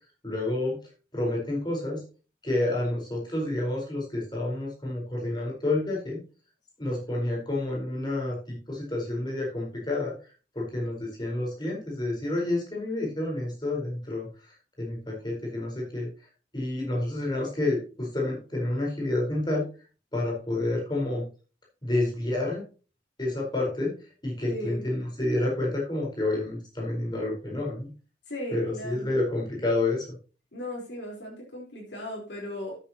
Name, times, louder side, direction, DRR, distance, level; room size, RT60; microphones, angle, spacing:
voice 1, 0.2-0.8 1.1-2.0 2.4-6.2 6.8-10.1 10.5-14.3 14.8-16.1 16.5-19.6 20.1-21.2 21.8-22.6 23.2-24.0 24.2-27.9 28.5-30.1, left 2 dB, 25° left, -2 dB, 4.6 m, -29 dB
voice 2, 24.5-24.8 28.3-29.1 30.5-32.8, left 1 dB, 65° left, -3 dB, 4.3 m, -37 dB
13.0 x 9.0 x 3.0 m, 0.35 s
head